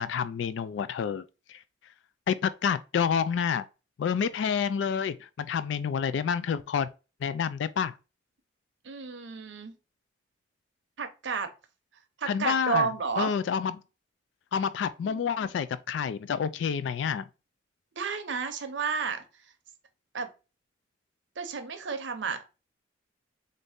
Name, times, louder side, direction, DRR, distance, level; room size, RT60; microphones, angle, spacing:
voice 1, 0.0-1.6 2.3-3.6 4.0-6.9 7.2-7.9 12.3-13.7 14.5-17.2, left 7 dB, 70° left, 0.3 m, -29 dB
voice 2, 8.8-9.7 11.0-11.5 12.2-13.4 15.0-15.5 18.0-19.2 20.1-20.3 21.4-22.4, right 5 dB, 75° right, 0.7 m, -32 dB
3.9 x 2.7 x 3.5 m
head